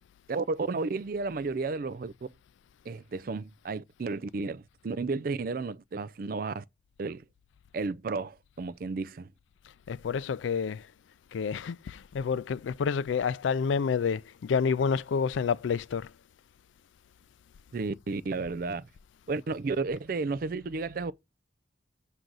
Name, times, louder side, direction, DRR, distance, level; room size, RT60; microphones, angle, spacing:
voice 1, 0.3-2.3 2.9-6.6 7.0-7.2 7.7-9.3 17.7-18.9 19.3-21.1, right 3 dB, 50° right, 0.4 m, -32 dB
voice 2, 9.9-10.8 11.3-16.1, left 6 dB, 90° left, 0.4 m, -29 dB
6.4 x 3.9 x 6.0 m
head